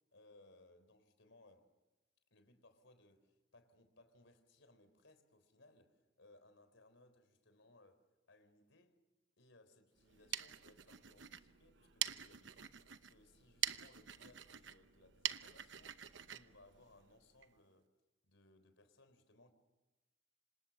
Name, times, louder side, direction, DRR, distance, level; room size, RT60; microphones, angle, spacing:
voice 1, 0.1-1.7 2.3-9.0 9.4-17.9 18.2-19.5, left 2 dB, 90° left, 4.0 m, -66 dB
sound 1, 10.0-17.5, right 11 dB, 80° right, 0.9 m, -45 dB
27.0 x 26.5 x 7.2 m
head